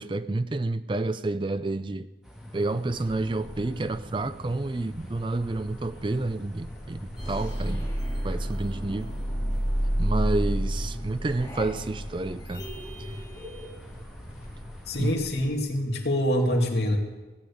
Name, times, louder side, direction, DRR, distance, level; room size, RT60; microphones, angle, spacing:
voice 1, 0.0-2.1 2.5-7.9 8.2-9.1 10.0-12.7 13.0-13.1 15.0-15.2, right 2 dB, 25° right, 14 dB, 0.4 m, -29 dB
sound 1, 2.2-15.2, equal, 5° right, 2.1 m, -47 dB
sound 2, 2.9-15.6, equal, 40° left, 2.5 m, -44 dB
sound 3, 7.2-13.7, equal, 15° left, 6.7 m, -30 dB
voice 2, 14.9-17.0, equal, 65° left, 1 dB, 2.7 m, -25 dB
16.5 x 9.0 x 8.5 m, 1.2 s
head